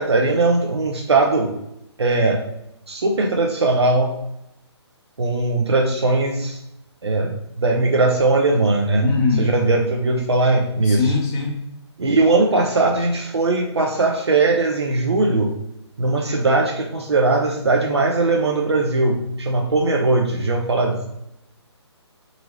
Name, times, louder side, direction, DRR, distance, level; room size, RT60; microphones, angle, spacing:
voice 1, 0.0-1.5 2.0-2.4 2.9-4.1 5.2-6.6 7.0-9.1 9.4-11.0 12.0-15.5 16.0-21.1, right 3 dB, 65° right, 0 dB, 0.7 m, -19 dB
voice 2, 9.0-9.6 10.8-11.6, left 4 dB, 20° left, -1 dB, 1.0 m, -21 dB
4.4 x 3.9 x 3.1 m, 0.83 s
figure-of-eight pair, 135°, 15 cm